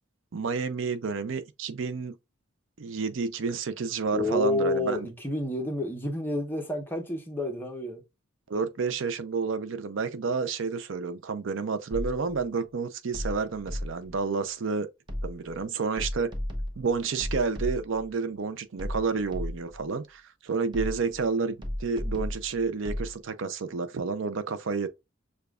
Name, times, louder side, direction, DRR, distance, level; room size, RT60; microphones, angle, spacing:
voice 1, 0.3-2.1 2.8-5.1 8.5-14.9 15.2-16.3 16.8-24.9, right 4 dB, 70° right, 0.5 m, -30 dB
voice 2, 4.1-8.0, left 2 dB, 10° left, 0.9 m, -29 dB
sound 1, 11.9-12.4 13.1-14.2 15.1-15.6 16.0-18.1 18.8-19.8 20.7-21.2 21.6-23.1, left 1 dB, 25° right, 0.9 m, -34 dB
6.8 x 2.3 x 2.4 m
head